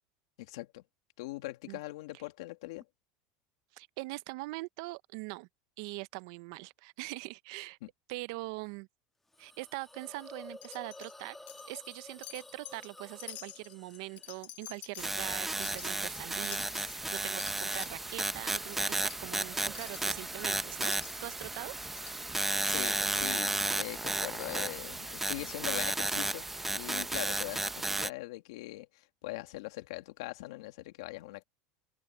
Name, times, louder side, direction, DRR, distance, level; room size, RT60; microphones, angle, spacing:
voice 1, 0.4-0.8 1.2-2.8 7.8-7.9 22.6-31.4, left 19 dB, 80° left, 2.2 m, -41 dB
voice 2, 3.7-5.5 5.8-7.8 8.1-8.9 9.4-11.4 11.7-20.9 21.2-21.8, right 23 dB, 70° right, 0.7 m, -42 dB
Hiss, 9.3-24.7, left 2 dB, 10° left, 1.7 m, -55 dB
Wind chime, 10.6-11.1 11.5-12.0 12.2-12.9 13.2-17.9 18.3-18.4 18.7-19.2 19.7-20.1 20.8-21.3 22.0-22.2 22.7-22.8 23.2-23.3, left 19 dB, 55° left, 5.1 m, -48 dB
sound 1, 15.0-28.1, right 2 dB, 10° right, 0.9 m, -33 dB
supercardioid pair, 120°, 3 cm